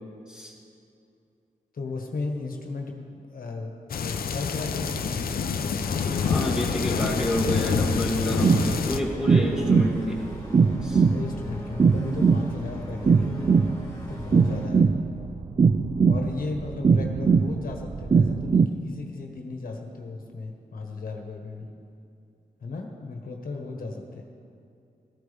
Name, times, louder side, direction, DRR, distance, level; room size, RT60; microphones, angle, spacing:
voice 1, 1.7-5.8 11.0-13.5 14.1-14.9 16.1-21.7 22.6-24.2, left 3 dB, 75° left, 2 dB, 1.4 m, -35 dB
sound 1, 3.9-9.0, left 6 dB, 90° left, 0.6 m, -27 dB
sound 2, 5.8-14.7, left 1 dB, 25° left, 2.5 m, -41 dB
voice 2, 6.2-10.2 10.8-11.0, equal, 5° right, -4 dB, 2.4 m, -29 dB
sound 3, 8.3-18.7, right 5 dB, 30° right, 0.4 m, -21 dB
17.5 x 14.0 x 3.5 m, 2.6 s
wide cardioid pair, 140°, 15 cm